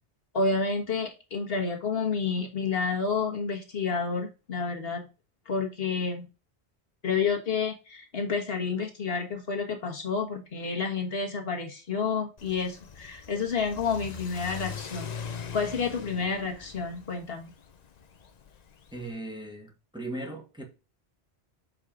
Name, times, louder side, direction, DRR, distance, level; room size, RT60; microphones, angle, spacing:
voice 1, 0.3-5.1 5.5-6.3 7.0-17.5, left 5 dB, 65° left, 1.5 m, -30 dB
Car / Accelerating revving vroom, 12.4-19.1, left 7 dB, 45° left, 0.7 m, -42 dB
voice 2, 18.9-20.7, right 2 dB, 5° right, 1.3 m, -38 dB
6.3 x 5.0 x 3.7 m
omnidirectional pair, 1.1 m